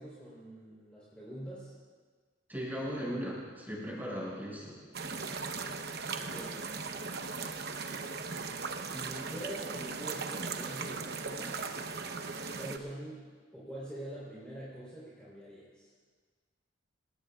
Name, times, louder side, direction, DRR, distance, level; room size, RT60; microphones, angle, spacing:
voice 1, 0.0-1.7 5.3-6.6 8.8-11.7 12.5-15.9, right 1 dB, 5° left, -9 dB, 3.9 m, -45 dB
voice 2, 2.5-4.8, equal, 10° right, -5 dB, 6.4 m, -37 dB
sound 1, 4.9-12.8, right 4 dB, 55° right, 0.9 m, -38 dB
29.0 x 18.5 x 2.5 m, 1.5 s
head